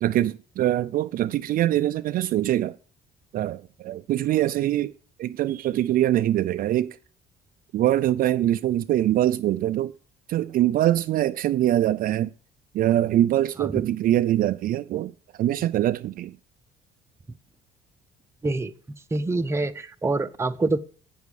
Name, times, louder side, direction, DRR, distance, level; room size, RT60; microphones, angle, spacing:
voice 1, 0.0-2.8 3.3-4.9 5.2-7.0 7.7-9.9 10.3-12.3 12.7-15.1 15.4-16.3, right 13 dB, 55° right, 0.4 m, -23 dB
voice 2, 19.1-20.8, right 2 dB, 15° right, 0.6 m, -26 dB
8.5 x 6.9 x 4.8 m
cardioid pair, 110°, 17 cm